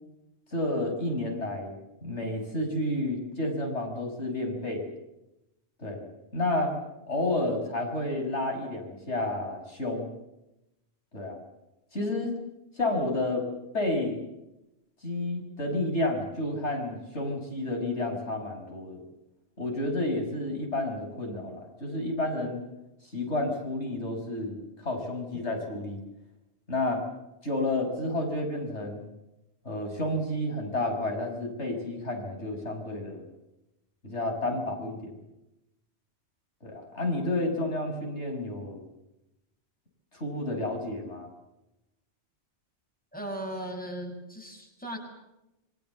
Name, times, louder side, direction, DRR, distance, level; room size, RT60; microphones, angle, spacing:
voice 1, 0.5-1.8 2.0-4.9 5.8-6.0 6.3-6.7 7.1-10.1 11.1-11.4 11.9-12.4 12.8-13.4 13.7-14.2 15.0-19.0 19.6-22.6 23.1-26.0 26.7-27.0 27.4-29.0 29.6-33.2 34.0-35.2 36.6-38.8 40.1-41.3, left 1 dB, 85° left, 2 dB, 6.2 m, -30 dB
voice 2, 43.1-45.0, right 1 dB, 5° left, 2 dB, 6.8 m, -37 dB
27.5 x 23.5 x 7.2 m, 0.93 s
omnidirectional pair, 1.1 m